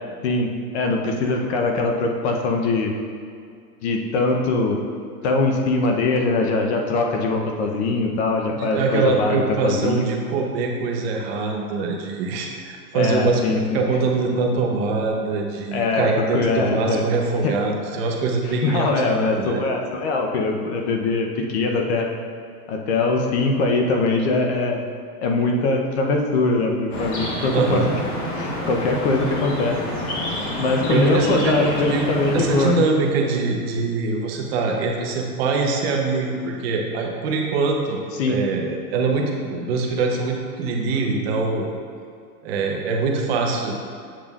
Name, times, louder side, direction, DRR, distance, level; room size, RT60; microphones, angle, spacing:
voice 1, 0.7-2.9 3.8-4.8 5.2-10.1 12.9-13.8 15.7-17.0 17.4-17.5 18.6-22.1 22.7-24.8 25.2-27.9 28.3-29.8 30.6-32.8 38.2-38.4, left 3 dB, 45° left, 2 dB, 0.7 m, -22 dB
voice 2, 8.5-19.6 27.5-27.9 30.9-38.0 38.3-41.7 42.4-43.7, right 4 dB, 40° right, 1 dB, 0.8 m, -23 dB
sound 1, 26.9-32.7, left 1 dB, 25° left, 1.1 m, -28 dB
7.4 x 6.7 x 2.4 m, 2.2 s
supercardioid pair, 155°, 46 cm